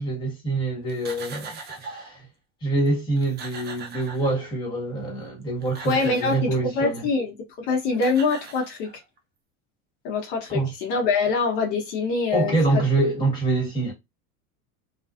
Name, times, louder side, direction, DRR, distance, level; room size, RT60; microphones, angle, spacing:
voice 1, 0.0-2.2 2.6-7.1 10.5-10.7 12.3-13.9, right 2 dB, 10° left, 1.4 m, -25 dB
sound 1, 0.9-2.2 2.9-3.0 3.2-4.7 5.4-6.5 7.6-7.7 7.9-9.2, right 4 dB, 25° right, 0.5 m, -40 dB
voice 2, 5.8-8.9 10.0-12.9, left 4 dB, 65° left, 1.0 m, -24 dB
2.5 x 2.3 x 2.4 m
supercardioid pair, 125°, 42 cm